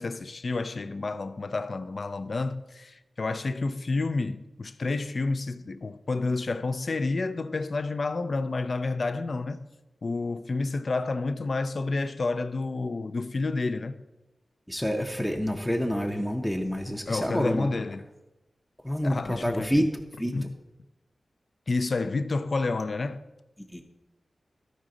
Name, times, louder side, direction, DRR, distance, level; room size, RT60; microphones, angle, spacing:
voice 1, 0.0-9.6 10.0-14.0 16.9-18.0 19.0-19.9 20.3-20.5 21.7-23.2, left 3 dB, 50° left, 0.4 m, -30 dB
voice 2, 14.7-17.7 18.8-19.9 20.2-20.3 23.7-23.8, equal, 5° left, 0.6 m, -27 dB
13.5 x 5.0 x 3.8 m
wide cardioid pair, 130°, 0 cm